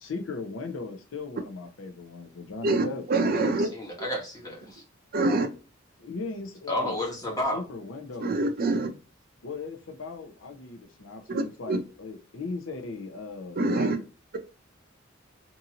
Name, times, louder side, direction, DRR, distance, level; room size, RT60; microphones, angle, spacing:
voice 1, 0.0-3.0 6.0-8.5 9.4-14.0, left 3 dB, 75° left, 0.6 m, -38 dB
voice 2, 2.6-3.7 5.1-5.5 8.2-8.9 11.3-11.8 13.6-14.0, right 2 dB, 50° right, 0.5 m, -25 dB
voice 3, 3.3-4.8 6.7-7.6, left 1 dB, 20° left, 1.0 m, -31 dB
2.7 x 2.6 x 2.6 m
head